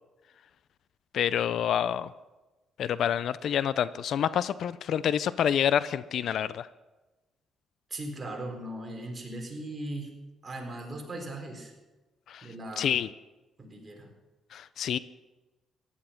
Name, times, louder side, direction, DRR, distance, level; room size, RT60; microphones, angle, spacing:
voice 1, 1.1-2.1 2.8-6.7 12.3-12.5 12.8-13.1 14.5-15.0, left 9 dB, 70° left, 17 dB, 0.5 m, -27 dB
voice 2, 7.9-10.1 10.4-11.7 12.4-12.9 13.6-14.1, right 1 dB, 25° right, 1 dB, 4.2 m, -38 dB
15.5 x 11.0 x 5.8 m, 1.1 s
cardioid pair, 90°, 0 cm